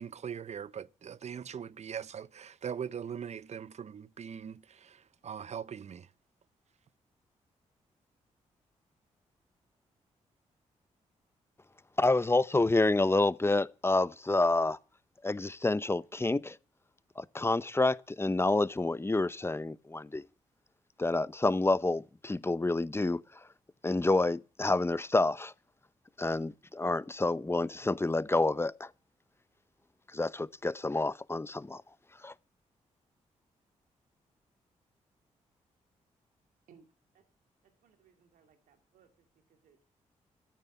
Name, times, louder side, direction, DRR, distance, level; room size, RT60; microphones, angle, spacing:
voice 1, 0.0-6.1, right 8 dB, 55° right, 0.7 m, -41 dB
voice 2, 12.0-14.8 15.2-16.6 17.2-20.2 21.0-23.2 23.8-25.5 26.2-28.9 30.1-31.8 32.2-32.3, left 2 dB, 15° left, 0.8 m, -28 dB
voice 3, 37.6-39.1 39.5-39.8, right 7 dB, 80° right, 2.3 m, -63 dB
13.5 x 9.1 x 8.0 m
supercardioid pair, 45°, 14 cm